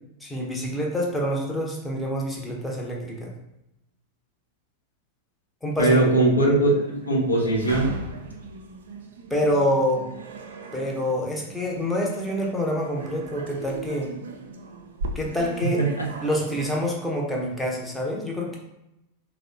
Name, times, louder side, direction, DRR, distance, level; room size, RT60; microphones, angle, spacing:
voice 1, 0.2-3.3 5.6-6.0 9.3-10.1 10.7-14.1 15.1-15.8 16.2-18.6, equal, 5° left, -2 dB, 0.6 m, -26 dB
voice 2, 5.8-7.9 15.6-16.1, right 2 dB, 80° left, -2 dB, 0.7 m, -21 dB
sound 1, 6.6-16.9, right 2 dB, 65° right, 0.3 m, -38 dB
3.4 x 2.0 x 2.5 m, 0.88 s
figure-of-eight pair, 90°, 0 cm